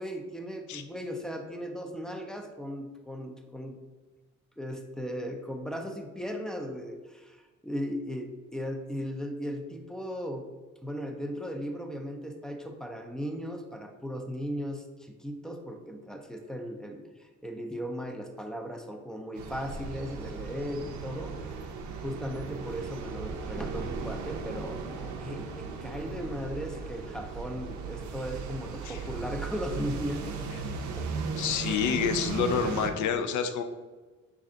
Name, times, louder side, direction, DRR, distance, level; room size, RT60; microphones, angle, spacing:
voice 1, 0.0-3.8 4.6-10.5 10.8-21.6 21.9-30.4 30.9-31.3, equal, ahead, 4 dB, 0.4 m, -37 dB
sound 1, 19.3-32.9, right 5 dB, 70° right, 0.5 m, -37 dB
voice 2, 31.4-33.6, left 7 dB, 75° left, 7 dB, 0.5 m, -28 dB
3.2 x 2.5 x 3.8 m, 1.3 s
cardioid pair, 90°, 30 cm